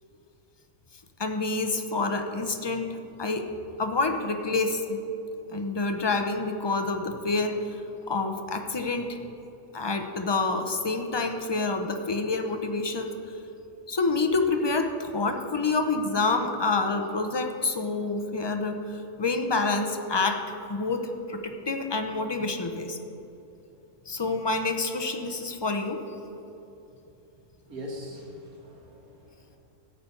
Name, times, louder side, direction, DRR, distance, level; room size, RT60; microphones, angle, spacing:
voice 1, 1.2-3.5 3.8-5.0 5.5-7.6 8.1-9.2 9.7-13.1 13.9-23.0 24.1-26.0, left 3 dB, 30° left, 5 dB, 0.5 m, -28 dB
voice 2, 27.7-29.6, left 1 dB, 85° right, 0 dB, 2.3 m, -41 dB
13.5 x 8.5 x 5.4 m, 3.0 s
omnidirectional pair, 1.5 m